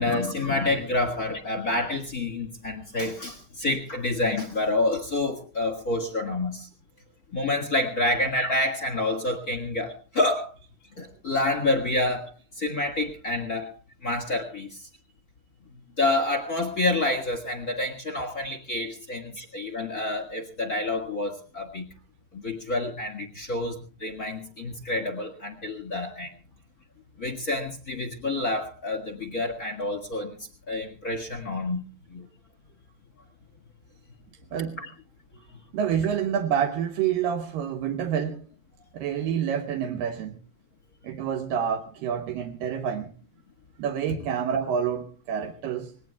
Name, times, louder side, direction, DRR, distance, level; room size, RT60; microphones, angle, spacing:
voice 1, 0.0-6.7 7.3-10.5 11.0-13.7 14.0-14.9 16.0-21.9 22.3-26.3 27.2-30.4 30.7-31.8 32.1-32.3 34.8-34.9, left 2 dB, 40° left, 1.4 m, -28 dB
voice 2, 35.7-38.5 38.9-40.4 41.0-43.1 43.8-45.9, right 8 dB, 80° right, 2.6 m, -28 dB
26.0 x 20.0 x 2.3 m
omnidirectional pair, 4.1 m